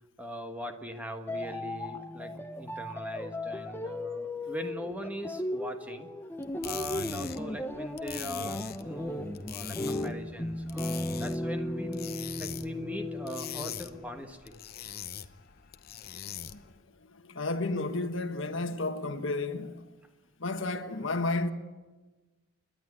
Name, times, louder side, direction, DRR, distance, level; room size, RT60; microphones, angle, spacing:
voice 1, 0.2-6.1 6.6-12.1 12.4-14.6, equal, 5° right, 1.3 m, -41 dB
sound 1, 1.3-14.2, left 1 dB, 10° left, 0.8 m, -36 dB
sound 2, 6.4-16.8, left 8 dB, 45° left, 0.8 m, -42 dB
voice 2, 17.2-19.8 20.4-21.5, left 2 dB, 60° left, 1.4 m, -32 dB
29.0 x 11.0 x 9.8 m
head